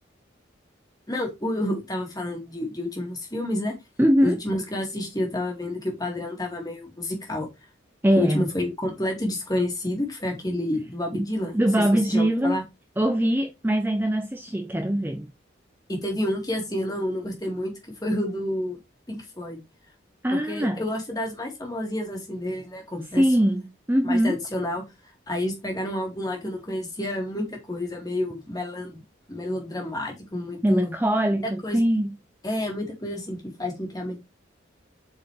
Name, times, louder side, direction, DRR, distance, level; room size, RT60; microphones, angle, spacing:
voice 1, 1.1-3.7 4.2-7.5 8.2-11.5 12.1-12.6 15.9-17.7 18.0-18.8 19.1-19.6 20.3-23.2 24.0-24.8 25.3-29.0 29.3-30.9 31.4-31.8 32.4-34.2, left 1 dB, 20° left, 2.2 m, -29 dB
voice 2, 4.0-4.4 8.0-8.4 11.2-11.3 11.5-12.6 13.0-15.3 20.2-20.8 23.2-23.6 23.9-24.4 30.6-32.1, equal, 10° right, 0.6 m, -22 dB
8.0 x 4.6 x 3.2 m
head